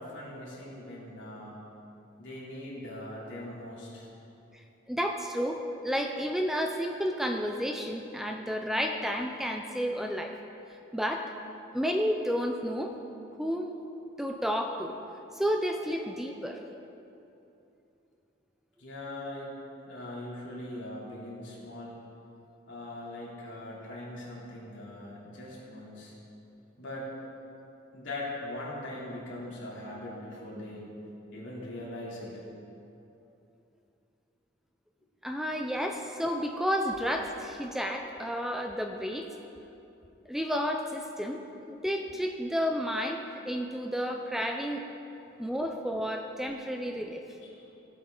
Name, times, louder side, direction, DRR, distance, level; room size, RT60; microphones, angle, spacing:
voice 1, 0.0-1.6 2.2-4.1 18.8-19.5 19.8-22.0 22.7-26.1 26.8-27.1 27.9-30.9 31.3-32.4 47.4-47.7, left 1 dB, 75° left, -6 dB, 3.0 m, -41 dB
voice 2, 4.5-10.3 10.9-11.3 11.7-13.0 13.4-13.8 14.2-15.0 15.3-16.6 35.2-39.3 40.3-44.8 45.4-47.2, equal, ahead, 3 dB, 0.4 m, -31 dB
16.0 x 8.0 x 3.8 m, 2.8 s
head